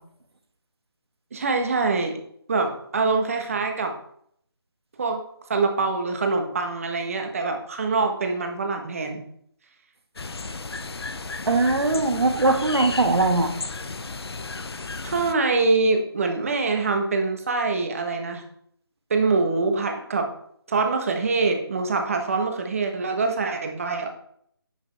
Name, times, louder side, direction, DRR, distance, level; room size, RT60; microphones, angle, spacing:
voice 1, 1.3-2.2 2.5-3.9 5.0-5.2 5.5-9.2 15.0-18.4 19.1-20.3 20.7-24.1, right 3 dB, 35° right, 4 dB, 1.3 m, -24 dB
sound 1, 10.2-15.3, left 3 dB, 75° left, 0.8 m, -34 dB
voice 2, 11.4-13.5, right 2 dB, 80° right, 5 dB, 1.6 m, -20 dB
10.0 x 6.2 x 3.4 m, 0.66 s
figure-of-eight pair, 170°, 13 cm